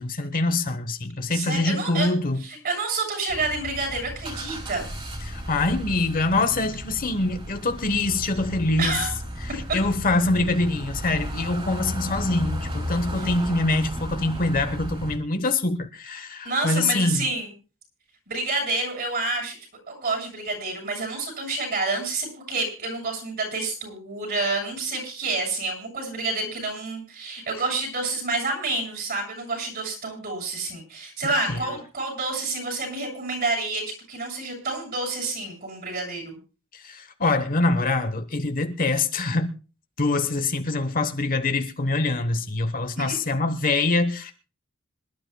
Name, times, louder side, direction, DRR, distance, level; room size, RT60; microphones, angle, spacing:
voice 1, 0.0-2.4 5.2-9.1 9.4-17.2 31.5-31.6 36.7-39.5 40.0-44.3, left 2 dB, 40° left, 1.1 m, -24 dB
voice 2, 1.3-2.1 2.4-4.9 8.8-9.1 16.4-17.5 18.3-19.6 19.9-36.4 43.0-43.1, right 3 dB, 45° right, 7.4 m, -28 dB
sound 1, 3.3-15.2, equal, 25° right, 4.3 m, -34 dB
26.5 x 12.0 x 2.3 m
head